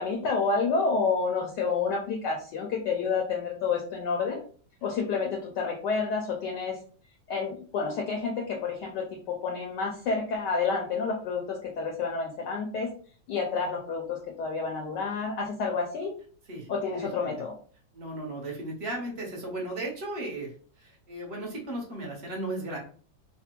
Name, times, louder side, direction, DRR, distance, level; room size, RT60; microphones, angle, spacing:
voice 1, 0.0-4.4 4.8-6.8 7.3-12.9 13.3-16.1 16.7-17.5, left 4 dB, 75° left, 1 dB, 1.1 m, -29 dB
voice 2, 16.5-17.3 17.9-20.5 20.8-22.8, right 1 dB, 50° right, -2 dB, 0.8 m, -36 dB
3.3 x 2.1 x 2.9 m, 0.44 s
omnidirectional pair, 2.2 m